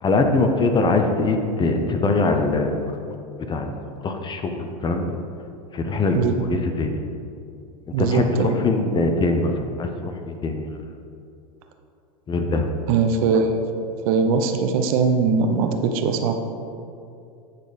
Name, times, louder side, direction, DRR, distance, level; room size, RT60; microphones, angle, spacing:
voice 1, 0.0-2.9 3.5-3.8 4.0-5.1 5.7-7.0 8.0-10.7 12.3-12.7, left 3 dB, 25° left, 5 dB, 0.8 m, -22 dB
voice 2, 7.9-8.6 12.9-13.6 14.1-16.3, right 5 dB, 65° right, 6 dB, 0.8 m, -21 dB
10.0 x 4.3 x 5.1 m, 2.5 s
hypercardioid pair, 110°, 20 cm